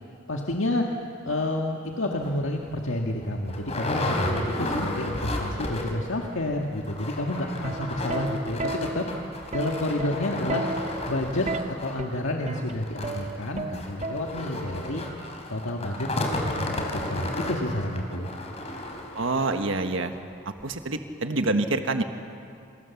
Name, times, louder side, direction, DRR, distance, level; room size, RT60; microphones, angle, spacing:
voice 1, 0.3-0.9 1.2-9.1 9.5-10.6 11.1-15.0 15.5-18.3, left 1 dB, 90° left, 1 dB, 1.8 m, -29 dB
sound 1, 2.2-2.4 2.9-3.0 3.2-6.1 6.4-6.5 6.8-19.6 20.1-20.2 20.6-20.7, left 1 dB, 35° left, 3.7 m, -33 dB
Plucked string instrument, 7.6-14.7 15.7-16.1, right 2 dB, 35° right, 0.6 m, -34 dB
voice 2, 19.1-20.1 20.4-22.0, right 2 dB, 75° right, 7 dB, 1.5 m, -26 dB
27.0 x 26.5 x 7.2 m, 2.5 s
head